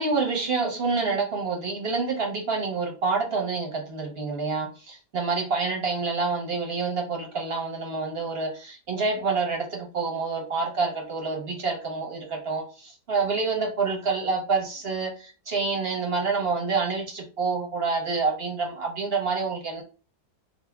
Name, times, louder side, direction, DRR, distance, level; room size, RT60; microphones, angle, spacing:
voice 1, 0.0-19.8, right 4 dB, 50° right, 0 dB, 0.8 m, -27 dB
3.9 x 2.1 x 3.4 m, 0.35 s
omnidirectional pair, 1.8 m